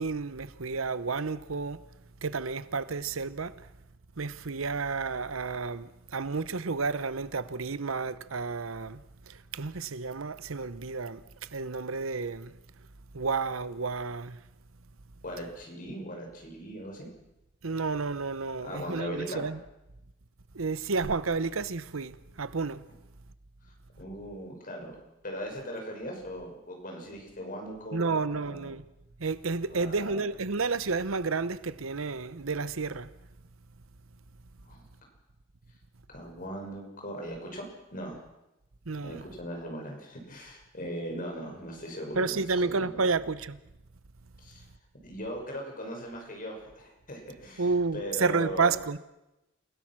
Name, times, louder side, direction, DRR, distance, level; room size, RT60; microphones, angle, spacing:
voice 1, 0.0-1.8 2.2-3.5 4.2-9.0 9.3-12.5 13.1-14.4 17.6-19.6 20.5-22.8 27.9-28.8 29.2-33.1 38.9-39.2 42.1-43.6 47.6-49.0, right 4 dB, 85° right, 0.9 m, -31 dB
voice 2, 15.2-17.1 18.6-19.4 24.0-24.9 25.2-28.7 29.7-30.2 34.6-34.8 36.1-38.2 39.0-43.0 44.4-44.7 45.0-48.7, equal, 45° left, 6.1 m, -39 dB
28.5 x 17.0 x 6.2 m
head